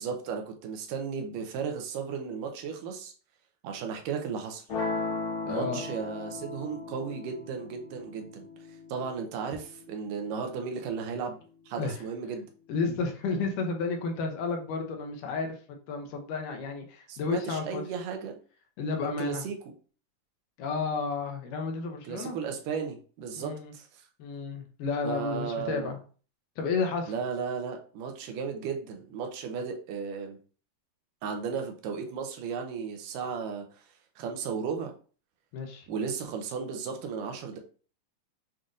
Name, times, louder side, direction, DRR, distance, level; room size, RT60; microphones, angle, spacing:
voice 1, 0.0-3.1 3.6-4.6 5.5-8.5 8.9-11.4 11.7-12.5 17.1-18.4 19.2-19.6 22.1-24.0 25.0-25.9 27.1-30.4 31.2-33.9 34.2-34.9 35.9-37.6, right 6 dB, 80° right, 4 dB, 2.2 m, -35 dB
sound 1, 4.7-10.7, left 3 dB, 60° left, 1.0 m, -37 dB
voice 2, 5.4-5.8 11.8-11.9 12.7-17.8 18.8-19.4 20.6-22.4 23.4-23.7 24.2-26.0 26.6-27.1 35.5-35.9, left 4 dB, 80° left, 3 dB, 2.3 m, -32 dB
7.3 x 2.5 x 2.6 m, 0.40 s
omnidirectional pair, 3.9 m